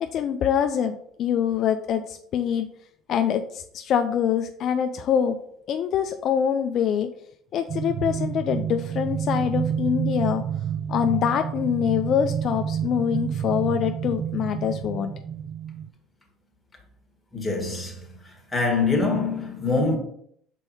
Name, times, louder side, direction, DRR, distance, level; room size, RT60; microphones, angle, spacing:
voice 1, 0.0-2.7 3.1-5.4 5.7-7.1 7.5-10.4 10.9-15.1, left 8 dB, 55° left, 0.4 m, -24 dB
sound 1, 7.7-15.9, right 8 dB, 50° right, 0.4 m, -29 dB
voice 2, 17.3-18.2 18.5-20.0, left 3 dB, 10° left, 1.7 m, -24 dB
5.3 x 4.5 x 4.2 m
cardioid pair, 105°, 0 cm